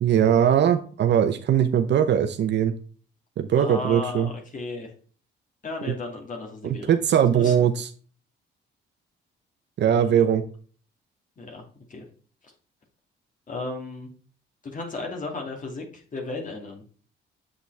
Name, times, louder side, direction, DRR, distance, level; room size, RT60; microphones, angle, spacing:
voice 1, 0.0-2.7 3.4-4.3 6.6-7.9 9.8-10.4, right 9 dB, 60° right, 8 dB, 0.8 m, -20 dB
voice 2, 3.5-4.9 5.6-7.0 7.3-7.5 10.0-10.2 11.4-11.6 11.9-12.0 13.5-14.1 14.6-16.8, left 2 dB, 40° left, 1 dB, 2.6 m, -34 dB
8.0 x 5.9 x 3.4 m, 0.41 s
cardioid pair, 90°, 20 cm